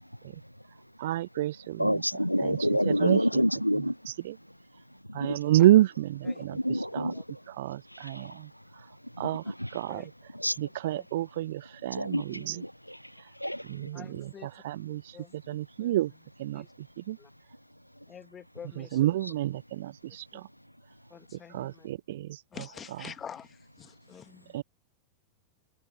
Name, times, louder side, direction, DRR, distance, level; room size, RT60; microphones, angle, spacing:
voice 1, 1.0-2.0 2.4-2.6 2.9-3.4 3.7-4.4 5.1-7.1 7.5-8.5 9.2-9.4 9.7-10.1 10.6-12.6 13.6-15.2 15.5-16.1 16.4-16.6 17.0-17.2 18.8-20.5 21.5-22.4 24.5-24.6, right 14 dB, 55° right, 0.5 m, -29 dB
voice 2, 1.8-4.0 5.2-5.4 6.6-7.2 7.9-8.3 9.6-9.7 10.4-10.6 11.9-12.2 12.6-13.0 13.4-13.6, equal, 90° left, 0.4 m, -27 dB
voice 3, 6.7-7.2 9.4-9.5 9.9-10.1 10.9-11.1 12.3-12.6 13.9-14.5 15.1-16.0 16.5-16.7 17.2-17.3 18.1-19.1 20.3-20.4 21.1-22.2 22.5-24.6, left 8 dB, 20° left, 2.4 m, -48 dB
figure-of-eight pair, 90°, 0 cm